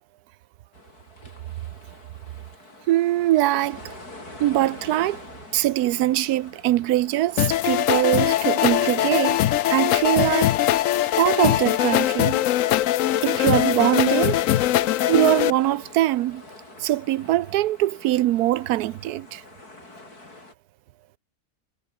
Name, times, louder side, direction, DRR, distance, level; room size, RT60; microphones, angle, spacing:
sound 1, 0.7-20.5, left 2 dB, 85° left, 6.4 m, -44 dB
voice 1, 2.9-3.9 4.4-5.2 5.5-9.4 9.7-10.5 11.2-12.4 13.2-14.4 15.1-16.4 16.8-19.4, right 14 dB, 85° right, 1.1 m, -22 dB
sound 2, 7.4-15.5, left 13 dB, 70° left, 0.9 m, -21 dB
omnidirectional pair, 1.6 m